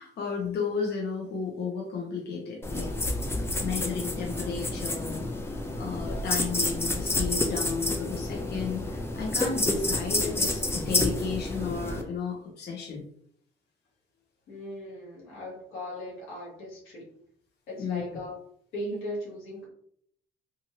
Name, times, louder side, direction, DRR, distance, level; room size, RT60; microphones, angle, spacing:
voice 1, 0.0-2.9 3.6-5.2 5.8-13.1 17.8-18.0, left 5 dB, 55° left, 0 dB, 0.8 m, -33 dB
sound 1, 2.6-12.0, left 2 dB, 10° left, 0.5 m, -29 dB
voice 2, 6.0-6.3 14.5-17.1 17.7-18.3 18.7-19.7, equal, 90° left, -4 dB, 1.2 m, -38 dB
2.9 x 2.5 x 2.7 m, 0.66 s
cardioid pair, 90°, 20 cm